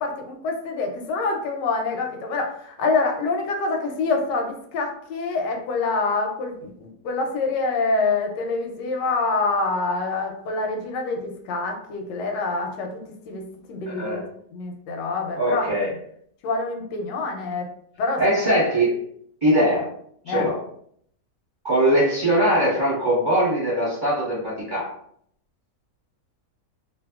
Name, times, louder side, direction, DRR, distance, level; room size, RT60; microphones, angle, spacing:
voice 1, 0.0-13.0 13.3-14.3 14.5-15.7 16.4-17.6 18.0-18.2 20.2-20.5, left 3 dB, 85° left, 3 dB, 1.2 m, -26 dB
voice 2, 13.9-14.2 15.4-15.9 18.2-19.0 19.4-19.9 20.3-20.6 21.6-24.9, right 1 dB, 35° right, -9 dB, 0.9 m, -21 dB
2.7 x 2.5 x 2.3 m, 0.66 s
omnidirectional pair, 1.9 m